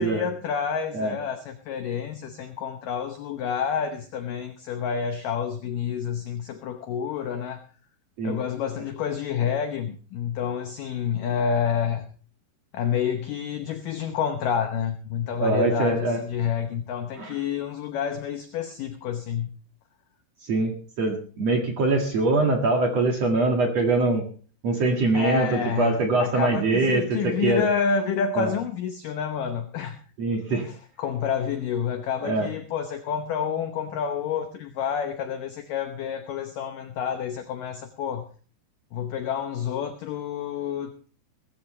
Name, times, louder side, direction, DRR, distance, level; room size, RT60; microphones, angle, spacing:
voice 1, 0.0-7.6 8.2-12.1 12.7-19.5 25.1-30.0 30.5-38.3 38.9-40.9, left 7 dB, 85° left, 7 dB, 1.9 m, -29 dB
voice 2, 15.4-16.2 17.2-17.3 20.4-24.2 24.6-27.6 28.3-28.5 30.2-30.7 32.2-32.5, right 3 dB, 50° right, 2 dB, 2.2 m, -23 dB
20.0 x 14.5 x 3.2 m, 0.40 s
omnidirectional pair, 5.3 m